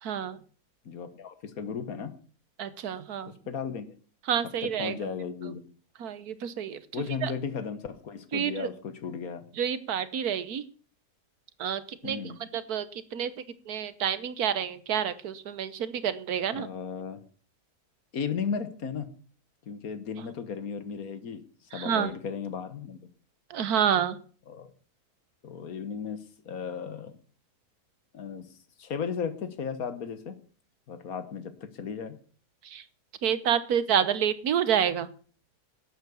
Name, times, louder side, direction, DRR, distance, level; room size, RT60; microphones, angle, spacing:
voice 1, 0.0-0.4 2.6-3.3 4.3-5.0 6.0-7.3 8.3-8.7 9.6-10.6 11.6-16.7 21.7-22.1 23.5-24.2 32.6-32.8 33.2-35.1, right 8 dB, 85° right, 14 dB, 1.5 m, -29 dB
voice 2, 0.8-2.1 3.5-3.9 4.6-5.6 6.9-9.4 12.0-12.4 16.5-17.2 18.1-19.1 19.7-21.4 21.7-23.0 24.5-24.7 25.4-27.2 28.1-28.5 28.8-30.4 30.9-32.2, left 6 dB, 70° left, 12 dB, 1.7 m, -35 dB
11.5 x 8.7 x 7.1 m, 0.43 s
omnidirectional pair, 1.6 m